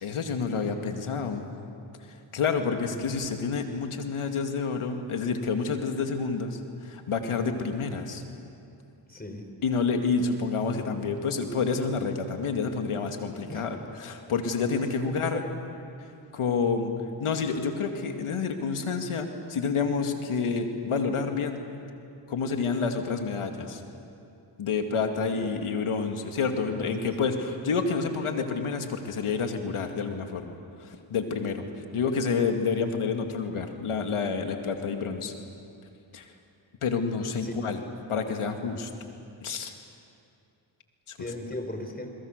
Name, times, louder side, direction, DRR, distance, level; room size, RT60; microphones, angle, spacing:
voice 1, 0.0-1.5 2.3-8.2 9.6-15.4 16.3-16.9 17.2-21.6 22.3-23.8 24.6-31.7 31.9-35.3 36.1-36.3 36.8-37.8 38.1-38.9 39.4-39.7 41.1-41.2, left 5 dB, 80° left, 5 dB, 2.4 m, -29 dB
voice 2, 9.1-9.5 13.5-13.7 15.1-15.5 25.4-25.6 26.6-27.3 31.8-31.9 37.4-37.8 38.1-38.3 41.2-42.1, left 1 dB, 20° left, 5 dB, 4.5 m, -38 dB
30.0 x 22.5 x 6.7 m, 2.6 s
cardioid pair, 50°, 50 cm